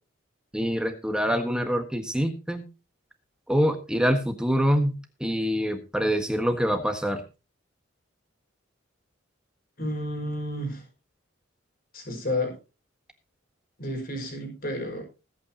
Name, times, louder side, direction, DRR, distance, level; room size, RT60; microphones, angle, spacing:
voice 1, 0.5-2.7 3.5-7.2, equal, 5° right, 5 dB, 1.5 m, -25 dB
voice 2, 9.8-10.8 11.9-12.6 13.8-15.0, left 1 dB, 45° left, 3 dB, 5.8 m, -31 dB
21.0 x 8.8 x 3.0 m, 0.30 s
head